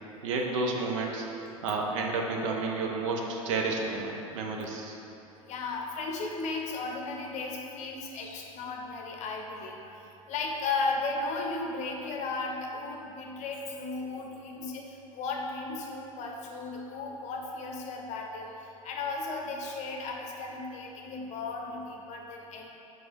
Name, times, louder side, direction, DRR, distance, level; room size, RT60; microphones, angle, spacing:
voice 1, 0.2-1.3 1.6-5.0, right 3 dB, 60° right, 0 dB, 0.8 m, -31 dB
voice 2, 5.5-9.8 10.3-18.5 18.8-22.7, left 3 dB, 40° left, 1 dB, 0.8 m, -35 dB
4.8 x 3.9 x 5.2 m, 2.9 s
figure-of-eight pair, 80°, 18 cm